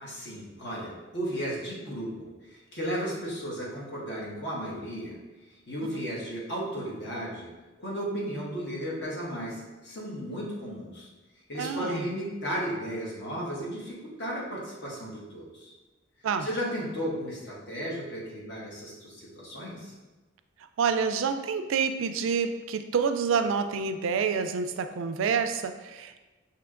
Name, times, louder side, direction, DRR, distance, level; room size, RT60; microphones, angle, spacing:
voice 1, 0.0-5.2 5.7-7.5 7.8-11.1 11.5-15.7 16.4-19.9, equal, 60° left, -5 dB, 1.3 m, -34 dB
voice 2, 11.6-12.1 16.2-16.5 20.8-26.2, right 6 dB, 85° right, 8 dB, 0.3 m, -28 dB
5.9 x 2.8 x 2.4 m, 1.2 s
head